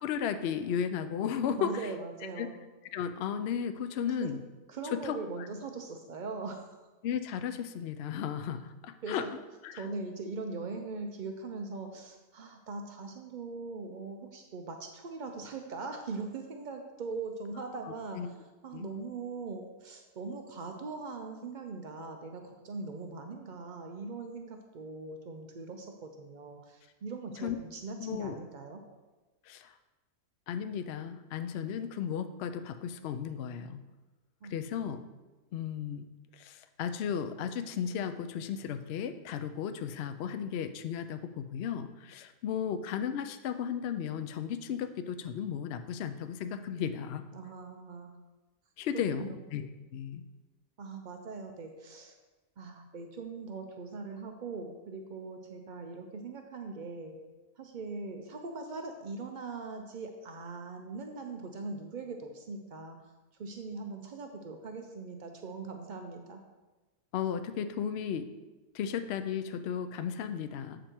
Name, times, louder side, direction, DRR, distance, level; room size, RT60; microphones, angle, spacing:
voice 1, 0.0-1.9 2.4-2.5 2.9-4.4 4.9-5.5 7.0-9.2 9.6-9.8 17.8-18.3 18.7-18.9 27.4-27.6 28.0-28.4 29.5-29.7 30.5-33.8 34.5-35.0 35.5-36.1 36.3-47.3 48.8-49.7 49.9-50.2 67.1-68.3 68.7-70.8, left 8 dB, 80° left, 9 dB, 0.5 m, -35 dB
voice 2, 1.6-2.5 4.2-4.4 4.7-6.7 9.0-9.3 9.7-18.2 18.6-28.8 34.4-34.7 47.3-48.2 48.9-49.4 50.8-52.2 52.6-57.2 57.6-63.0 63.4-66.4, right 4 dB, 90° right, 4 dB, 0.4 m, -41 dB
7.6 x 5.2 x 4.4 m, 1.2 s
omnidirectional pair, 1.6 m